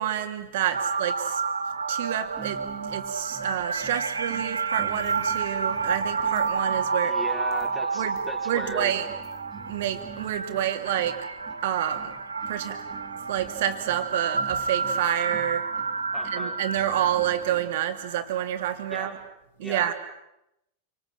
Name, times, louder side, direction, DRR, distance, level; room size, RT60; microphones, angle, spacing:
voice 1, 0.0-1.4 1.9-2.6 2.9-7.2 7.9-8.2 8.5-9.1 9.7-11.2 11.6-12.1 12.5-12.8 13.3-15.6 16.3-19.2 19.6-19.9, right 11 dB, 55° right, 8 dB, 3.0 m, -28 dB
sound 1, 0.7-19.1, right 4 dB, 75° right, 1.4 m, -30 dB
sound 2, 2.3-17.8, right 5 dB, 25° right, 3.8 m, -47 dB
voice 2, 7.0-8.9 16.1-16.6 18.9-19.2 19.6-19.9, left 2 dB, 10° left, 3 dB, 5.2 m, -38 dB
28.0 x 26.5 x 7.9 m, 0.85 s
figure-of-eight pair, 90°, 0 cm